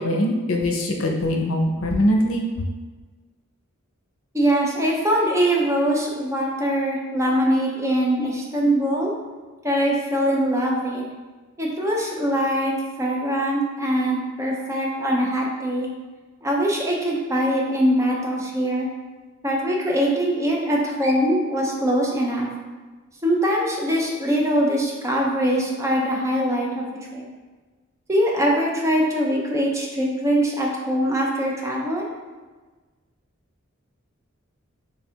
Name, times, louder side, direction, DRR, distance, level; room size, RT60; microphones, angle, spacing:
voice 1, 0.0-2.5, left 1 dB, 75° left, 1 dB, 0.6 m, -22 dB
voice 2, 4.3-9.1 9.6-11.1 11.6-12.7 13.0-15.9 16.4-18.9 19.4-22.5 23.2-26.9 27.1-27.3 28.1-32.1, equal, 15° right, -2 dB, 0.5 m, -22 dB
3.4 x 2.4 x 4.3 m, 1.3 s
head